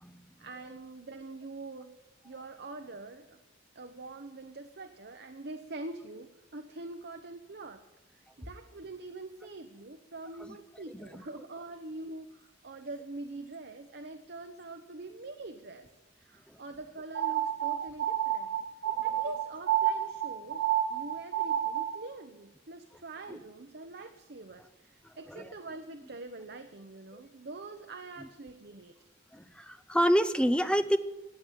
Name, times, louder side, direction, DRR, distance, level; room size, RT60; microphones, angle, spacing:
voice 1, 0.4-1.9 2.2-3.4 3.7-7.8 8.1-15.9 16.2-18.6 19.0-28.9, right 2 dB, 60° right, 6 dB, 1.0 m, -44 dB
sound 1, 17.1-22.0, right 11 dB, 90° right, 0.9 m, -30 dB
voice 2, 25.0-25.5 29.3-31.0, equal, 5° left, 10 dB, 0.8 m, -28 dB
16.5 x 8.5 x 9.1 m, 1.1 s
head